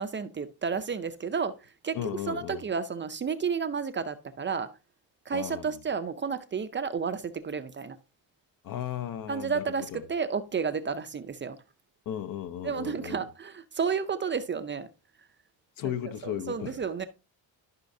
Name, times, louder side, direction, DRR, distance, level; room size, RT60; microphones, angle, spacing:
voice 1, 0.0-4.7 5.3-8.0 9.3-11.6 12.6-14.9 15.8-15.9 16.2-17.1, right 6 dB, 25° right, 0.5 m, -31 dB
voice 2, 1.9-2.6 5.3-5.8 8.6-10.0 12.1-13.3 15.8-16.7, left 10 dB, 50° left, 0.6 m, -35 dB
13.5 x 5.6 x 2.6 m
cardioid pair, 150°, 44 cm